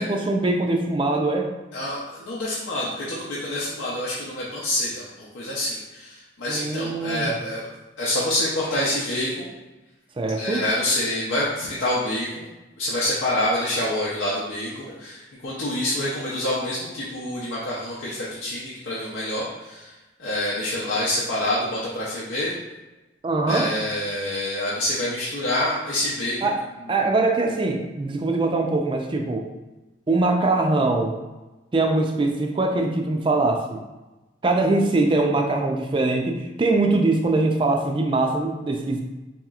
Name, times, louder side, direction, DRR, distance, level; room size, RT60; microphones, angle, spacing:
voice 1, 0.0-1.5 6.5-7.4 10.2-10.6 23.2-23.7 26.4-26.6 26.9-29.5 30.1-31.2 31.7-33.8 34.4-39.0, right 2 dB, 25° right, 3 dB, 0.3 m, -22 dB
voice 2, 1.7-7.6 8.0-9.5 10.3-12.5 12.8-19.9 20.2-22.5 23.5-26.4, left 1 dB, 80° left, -8 dB, 0.6 m, -27 dB
4.0 x 2.8 x 2.4 m, 1.1 s
head